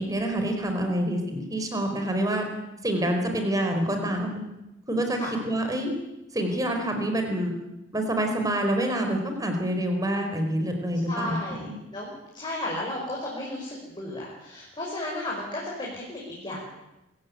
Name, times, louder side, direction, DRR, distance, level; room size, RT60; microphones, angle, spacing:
voice 1, 0.0-2.5 2.8-4.4 4.9-5.9 6.3-7.6 7.9-11.7, right 1 dB, 20° right, 4 dB, 4.5 m, -27 dB
voice 2, 11.1-11.7 11.9-16.7, left 1 dB, 25° left, -4 dB, 5.6 m, -34 dB
24.5 x 15.5 x 9.6 m, 0.96 s
head